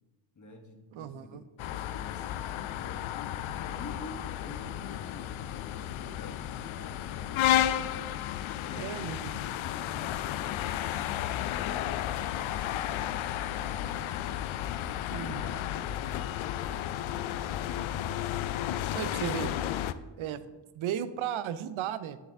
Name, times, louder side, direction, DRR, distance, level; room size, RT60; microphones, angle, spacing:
voice 1, 0.3-1.4 1.7-3.2 3.6-8.1 8.6-13.0 13.5-14.2 15.0-18.6 20.2-20.4, left 3 dB, 35° left, 3 dB, 1.5 m, -49 dB
voice 2, 0.9-1.4 8.8-9.4 15.1-15.4 18.9-19.6 20.2-20.4 20.8-22.2, right 10 dB, 75° right, 14 dB, 0.6 m, -35 dB
sound 1, 1.6-19.9, left 12 dB, 75° left, 0.5 m, -33 dB
7.8 x 6.7 x 3.6 m, 1.2 s
cardioid pair, 65°, 49 cm